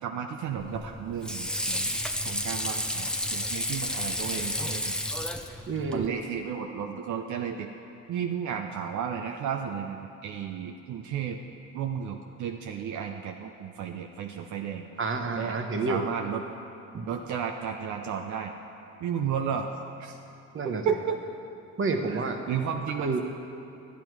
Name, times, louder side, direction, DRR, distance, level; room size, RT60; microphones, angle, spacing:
voice 1, 0.0-5.0 5.9-7.7 8.1-11.4 11.7-14.9 15.3-15.6 15.8-16.4 17.1-18.5 19.0-20.2 20.6-21.2 22.1-23.2, right 7 dB, 70° right, 3 dB, 0.7 m, -33 dB
Water / Sink (filling or washing), 0.6-6.1, left 1 dB, 5° left, 0.7 m, -31 dB
voice 2, 5.7-6.1 15.0-16.0 16.9-17.1 20.5-20.8 21.8-22.4 23.0-23.2, right 3 dB, 45° right, 5 dB, 1.1 m, -29 dB
12.5 x 9.6 x 4.7 m, 2.7 s
cardioid pair, 90°, 30 cm